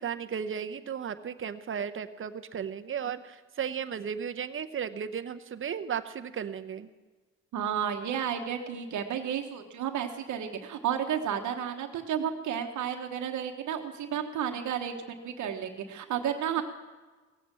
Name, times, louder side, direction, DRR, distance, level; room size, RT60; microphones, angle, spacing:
voice 1, 0.0-6.9, right 7 dB, 45° right, 10 dB, 0.9 m, -35 dB
voice 2, 7.5-16.6, right 8 dB, 75° right, 4 dB, 1.2 m, -32 dB
17.0 x 8.2 x 7.4 m, 1.3 s
cardioid pair, 90°, 30 cm